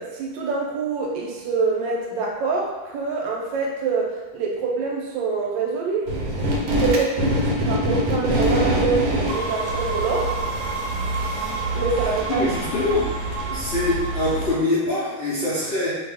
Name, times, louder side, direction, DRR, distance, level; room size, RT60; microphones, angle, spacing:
voice 1, 0.0-6.1 6.8-10.4 11.7-12.4, right 4 dB, 85° right, -1 dB, 1.4 m, -25 dB
sound 1, 6.1-14.5, right 1 dB, 65° right, 0.9 m, -24 dB
voice 2, 12.3-13.1 13.5-16.0, left 2 dB, 90° left, -9 dB, 0.5 m, -24 dB
2.7 x 2.6 x 3.4 m, 1.3 s
omnidirectional pair, 2.0 m